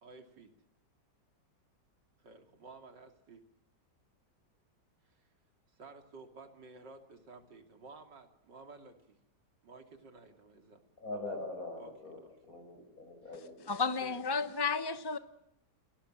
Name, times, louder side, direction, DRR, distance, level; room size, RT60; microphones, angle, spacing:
voice 1, 0.0-0.5 2.2-3.4 5.0-5.3 5.7-9.2 9.6-10.8 11.1-11.2 11.8-11.9 12.2-12.3 14.0-14.2, right 3 dB, 90° right, 5 dB, 3.5 m, -53 dB
voice 2, 11.0-12.2 12.5-13.8, left 2 dB, 50° left, 4 dB, 7.9 m, -42 dB
voice 3, 13.7-15.2, left 5 dB, 20° left, 11 dB, 0.6 m, -32 dB
29.0 x 19.5 x 7.6 m, 0.77 s
omnidirectional pair, 1.9 m